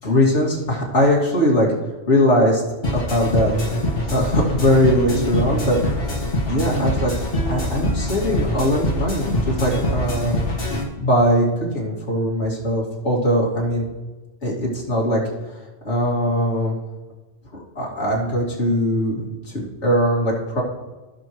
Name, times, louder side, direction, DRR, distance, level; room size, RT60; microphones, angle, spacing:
voice 1, 0.0-1.7 2.1-2.6 2.9-3.5 4.1-5.8 6.5-7.1 7.5-10.4 11.0-11.5 11.7-13.9 14.4-15.2 15.8-16.8 17.8-20.6, equal, 65° left, -4 dB, 2.7 m, -20 dB
sound 1, 2.8-10.8, left 1 dB, 50° left, 1.8 m, -24 dB
16.0 x 6.5 x 3.1 m, 1.2 s
omnidirectional pair, 1.3 m